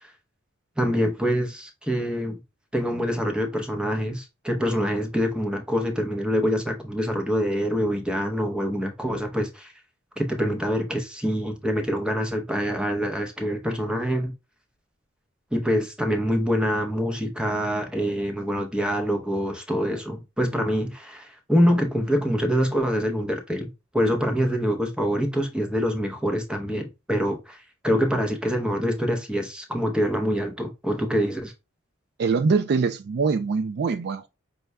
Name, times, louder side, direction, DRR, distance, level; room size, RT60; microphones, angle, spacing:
voice 1, 0.8-2.3 2.7-9.7 10.2-14.3 15.5-31.5, equal, 5° right, 0.7 m, -25 dB
voice 2, 32.2-34.3, right 4 dB, 55° right, 0.3 m, -23 dB
5.3 x 2.3 x 3.3 m
head